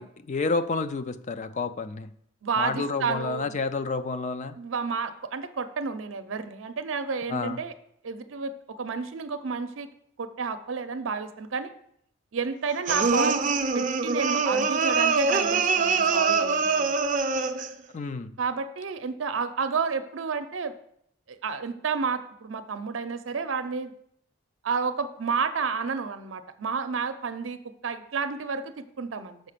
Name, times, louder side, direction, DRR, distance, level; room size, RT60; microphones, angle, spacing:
voice 1, 0.0-2.1 2.6-4.6 7.3-7.6 17.9-18.3, left 3 dB, 40° left, 11 dB, 0.4 m, -30 dB
voice 2, 2.4-3.5 4.6-7.7 8.0-8.5 8.8-9.9 10.2-11.7 12.3-13.5 13.7-16.9 18.4-20.7 21.3-23.9 24.6-29.4, right 5 dB, 80° right, 10 dB, 0.6 m, -30 dB
sound 1, 12.9-17.8, right 4 dB, 40° right, 0.5 m, -24 dB
6.4 x 4.9 x 6.7 m, 0.72 s
head